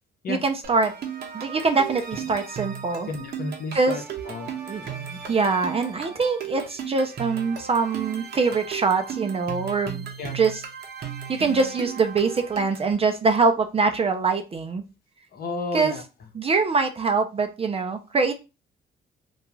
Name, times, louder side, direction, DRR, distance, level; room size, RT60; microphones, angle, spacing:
voice 1, 0.3-0.9 1.3-3.1 3.7-4.0 4.7-10.1 10.3-10.6 11.3-14.8 15.7-16.0 16.3-18.3, right 4 dB, 30° right, 6 dB, 0.4 m, -24 dB
sound 1, 0.6-12.9, right 8 dB, 55° right, 0.7 m, -36 dB
voice 2, 3.1-4.0 4.3-4.5 10.2-10.4 15.3-16.0, left 3 dB, 50° left, 3 dB, 0.8 m, -31 dB
2.3 x 2.3 x 3.0 m, 0.29 s
cardioid pair, 90°, 20 cm